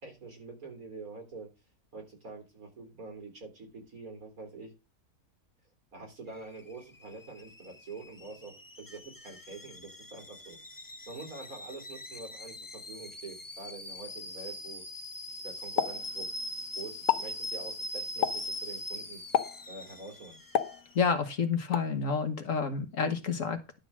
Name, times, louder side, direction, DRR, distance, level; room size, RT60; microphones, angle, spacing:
voice 1, 0.0-1.5 1.9-4.7 5.9-10.6 11.1-14.8 15.4-16.3 16.7-19.2 19.7-20.4, right 3 dB, 70° right, 2 dB, 4.1 m, -46 dB
Alarm / Boiling, 6.3-21.1, left 1 dB, 15° left, 0.7 m, -42 dB
Explosion, 15.8-16.6 16.9-17.4 18.2-18.6 19.3-19.7 20.5-21.2 21.7-22.0, left 10 dB, 80° left, 1.3 m, -30 dB
voice 2, 20.9-23.8, left 5 dB, 60° left, 7 dB, 1.7 m, -29 dB
11.5 x 3.9 x 7.3 m, 0.27 s
omnidirectional pair, 1.6 m